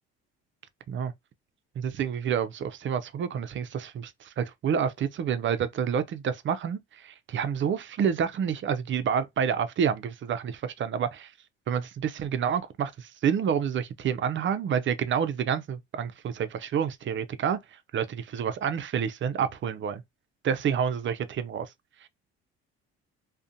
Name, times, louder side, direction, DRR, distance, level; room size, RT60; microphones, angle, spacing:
voice 1, 1.8-11.3 11.7-17.6 17.9-20.0 20.4-21.7, right 7 dB, 40° right, 0.5 m, -28 dB
2.4 x 2.1 x 2.6 m
supercardioid pair, 65°, 30 cm